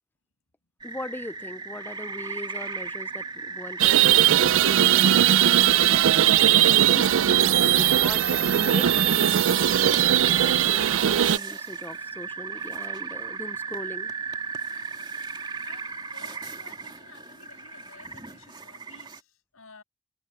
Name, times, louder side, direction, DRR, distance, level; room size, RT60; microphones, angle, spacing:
voice 1, 0.8-5.8 6.7-14.1, left 1 dB, 10° left, 0.5 m, -40 dB
sound 1, 0.8-19.2, right 5 dB, 20° right, 2.3 m, -36 dB
sound 2, 3.8-11.4, right 11 dB, 65° right, 0.4 m, -19 dB
voice 2, 15.6-19.8, left 4 dB, 70° left, 7.0 m, -53 dB
head